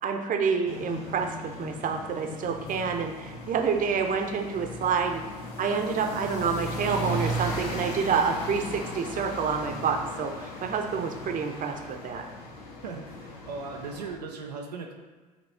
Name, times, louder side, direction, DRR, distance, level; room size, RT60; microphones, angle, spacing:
voice 1, 0.0-5.2 5.6-12.3, right 6 dB, 40° right, 4 dB, 0.8 m, -28 dB
sound 1, 0.7-14.2, left 1 dB, 75° left, 0.9 m, -37 dB
voice 2, 12.8-14.9, right 4 dB, 85° right, 1 dB, 0.5 m, -38 dB
8.0 x 3.0 x 4.2 m, 1.4 s
hypercardioid pair, 60°, 20 cm